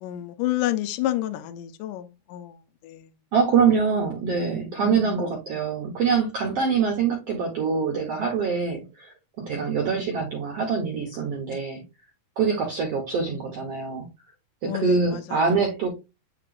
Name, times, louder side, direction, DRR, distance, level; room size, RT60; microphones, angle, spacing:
voice 1, 0.0-2.6 2.8-3.1 4.8-5.2 14.6-15.4, left 14 dB, 85° left, 1.8 m, -29 dB
voice 2, 3.3-11.8 12.4-14.1 14.6-15.9, right 5 dB, 70° right, 1.5 m, -24 dB
9.7 x 3.9 x 2.5 m
omnidirectional pair, 4.6 m